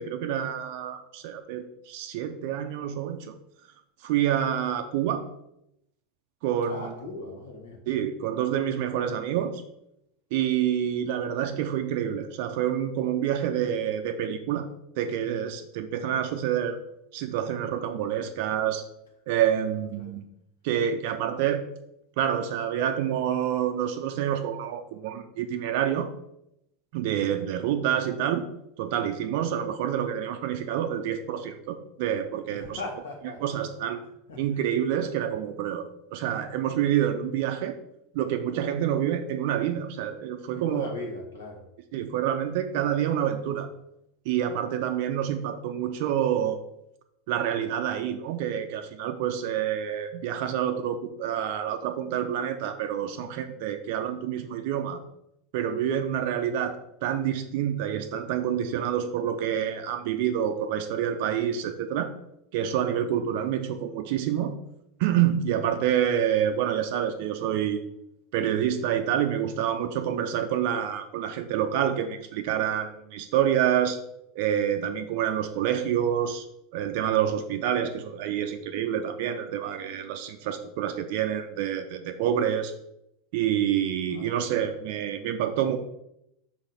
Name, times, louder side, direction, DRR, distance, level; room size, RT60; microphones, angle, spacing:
voice 1, 0.0-3.3 4.0-5.2 6.4-7.0 7.9-9.6 10.3-14.7 15.0-16.8 17.1-18.8 19.3-20.2 20.6-21.6 22.2-26.1 26.9-28.5 28.8-32.8 33.4-34.0 34.4-37.8 38.1-40.9 41.9-43.7 44.3-46.6 47.3-55.0 55.5-62.1 62.5-64.6 65.0-67.8 68.3-74.0 74.3-76.4 76.7-82.7 83.3-85.8, right 10 dB, 55° right, 7 dB, 0.5 m, -27 dB
voice 2, 6.7-7.8 20.0-20.1 32.5-33.6 34.3-34.6 40.5-41.6 84.1-84.6, left 2 dB, 70° left, 1 dB, 1.5 m, -39 dB
6.1 x 3.9 x 4.0 m, 0.80 s
figure-of-eight pair, 80°, 0 cm